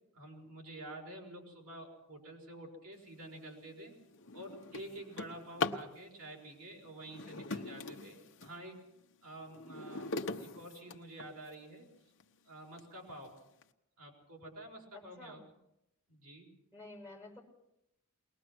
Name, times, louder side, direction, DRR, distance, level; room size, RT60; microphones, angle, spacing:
voice 1, 0.1-3.9 4.3-8.8 9.2-11.9 12.4-13.4 14.0-15.4 16.1-16.5, right 1 dB, 80° right, 0 dB, 5.5 m, -49 dB
Drawer open or close, 3.2-3.5 3.9-5.9 7.0-8.6 9.1-11.5 12.2-12.3 12.8-12.9 13.2-13.6, left 3 dB, 60° left, 1.0 m, -41 dB
voice 2, 14.9-15.4 16.7-17.4, left 2 dB, 10° right, -1 dB, 5.9 m, -51 dB
22.0 x 19.5 x 6.1 m, 0.83 s
head